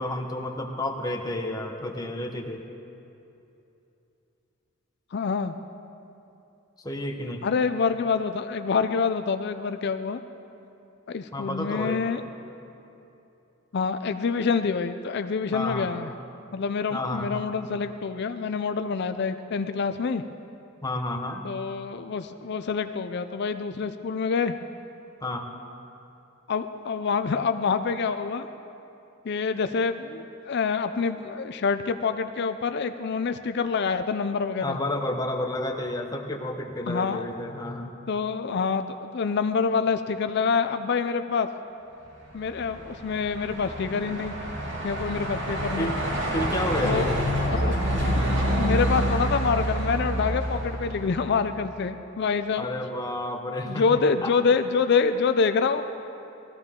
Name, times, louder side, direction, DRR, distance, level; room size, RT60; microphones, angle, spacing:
voice 1, 0.0-2.6 6.8-7.4 11.3-12.0 15.5-15.9 16.9-17.4 20.8-21.5 25.2-25.5 34.6-38.0 45.5-46.0 46.3-47.1 52.5-54.3, left 1 dB, 20° left, 3 dB, 1.0 m, -31 dB
voice 2, 5.1-5.5 7.4-10.2 11.1-12.2 13.7-16.1 16.5-20.2 21.4-24.5 26.5-28.5 29.2-34.8 36.9-37.2 38.1-41.5 42.3-44.3 44.8-45.9 46.8-47.1 47.4-48.1 48.5-52.7 53.6-55.8, left 5 dB, 55° left, 9 dB, 0.4 m, -26 dB
Truck, 42.3-51.6, equal, 65° right, 2.2 m, -28 dB
18.5 x 14.5 x 3.7 m, 2.8 s
head